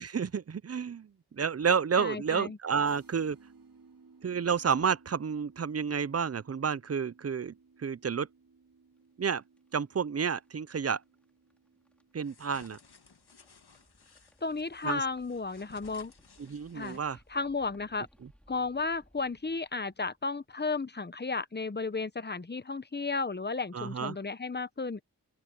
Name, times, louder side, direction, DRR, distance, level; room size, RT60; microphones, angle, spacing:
voice 1, 0.0-3.4 4.2-8.3 9.2-9.4 9.7-11.0 12.1-12.8 14.8-15.0 16.4-17.2 23.7-24.2, right 6 dB, 40° right, 0.5 m, -30 dB
voice 2, 2.0-2.6 14.4-16.1 16.7-17.0 17.3-18.1 18.5-25.0, left 4 dB, 25° left, 0.9 m, -33 dB
sound 1, 2.8-12.5, right 4 dB, 60° right, 2.9 m, -60 dB
sound 2, 9.0-21.1, equal, 5° left, 4.4 m, -65 dB
sound 3, 12.2-17.3, left 5 dB, 90° left, 1.8 m, -58 dB
open air
wide cardioid pair, 80°, 38 cm